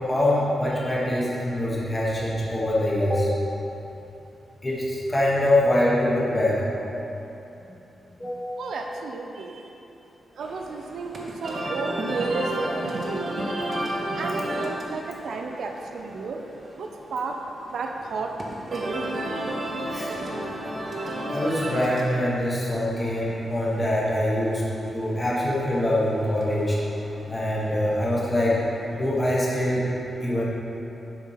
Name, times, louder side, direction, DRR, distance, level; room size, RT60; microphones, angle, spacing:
voice 1, 0.0-3.3 4.6-6.6 8.1-8.6 19.9-20.1 21.3-24.6 24.9-26.8 27.3-28.6 28.9-29.9 30.2-30.4, left 1 dB, 15° left, -6 dB, 1.3 m, -24 dB
voice 2, 8.6-9.6 10.4-13.3 14.2-16.4 16.8-17.4 17.7-18.3 18.7-19.1, right 4 dB, 65° right, 2 dB, 0.5 m, -32 dB
sound 1, 10.4-28.9, right 1 dB, 35° right, 0.8 m, -33 dB
7.1 x 4.5 x 5.7 m, 3.0 s
wide cardioid pair, 180°, 0 cm